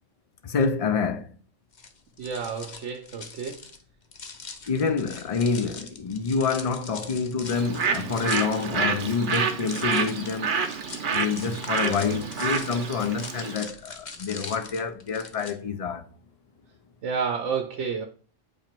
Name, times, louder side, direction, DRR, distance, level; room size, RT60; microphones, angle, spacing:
voice 1, 0.4-1.4 4.7-10.5 11.1-16.1, left 5 dB, 65° left, 0.3 m, -27 dB
sound 1, 1.7-15.5, left 4 dB, 45° left, 0.7 m, -42 dB
voice 2, 2.2-3.6 17.0-18.1, right 6 dB, 70° right, 1.0 m, -30 dB
Bird, 7.5-13.6, right 5 dB, 50° right, 0.7 m, -28 dB
8.5 x 2.9 x 4.5 m
omnidirectional pair, 1.3 m